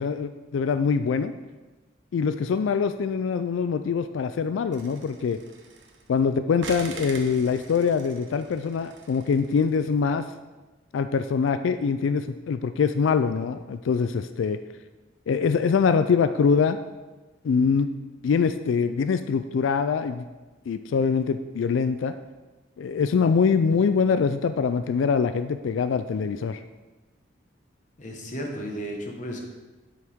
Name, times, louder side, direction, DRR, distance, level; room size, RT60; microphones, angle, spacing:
voice 1, 0.0-1.3 2.1-5.4 6.1-10.2 10.9-14.6 15.3-16.8 17.4-17.9 18.2-20.2 20.7-22.1 22.8-26.6, left 5 dB, 75° left, 10 dB, 0.3 m, -24 dB
sound 1, 4.7-6.2 6.6-9.9, right 4 dB, 65° right, 1.1 m, -43 dB
voice 2, 28.0-29.4, equal, 40° left, 1 dB, 1.3 m, -34 dB
8.0 x 7.5 x 3.6 m, 1.2 s
head